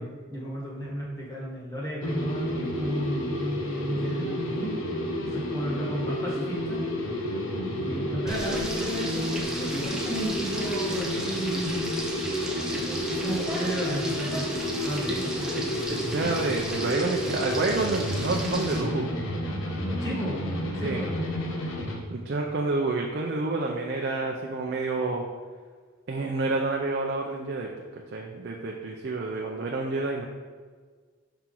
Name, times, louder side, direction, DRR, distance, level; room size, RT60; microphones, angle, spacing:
voice 1, 0.0-4.8 5.2-6.8 7.8-12.0 13.2-14.4 14.8-15.6 20.0-20.4 20.8-21.3, right 1 dB, 15° left, -6 dB, 1.5 m, -33 dB
sound 1, 2.0-22.0, left 1 dB, 75° left, 0.9 m, -31 dB
Frying (food), 8.3-18.8, right 1 dB, 5° right, 0.6 m, -35 dB
voice 2, 15.5-19.1 20.8-21.0 22.1-25.2 26.1-30.2, right 3 dB, 55° right, 0 dB, 0.5 m, -29 dB
5.8 x 4.4 x 3.8 m, 1.5 s
head